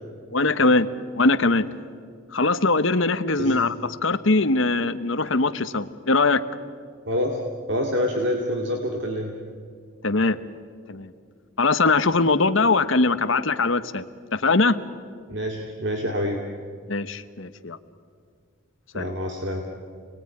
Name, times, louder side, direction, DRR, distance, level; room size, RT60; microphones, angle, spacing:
voice 1, 0.3-0.9 1.2-1.6 2.3-6.4 10.0-10.4 10.9-11.1 11.6-14.0 14.3-14.7 16.9-17.8 18.9-19.1, left 3 dB, 65° left, 11 dB, 1.1 m, -21 dB
voice 2, 7.1-9.3 15.3-16.4 18.9-19.7, equal, 55° right, 1 dB, 2.3 m, -27 dB
29.0 x 20.0 x 9.8 m, 2.1 s
head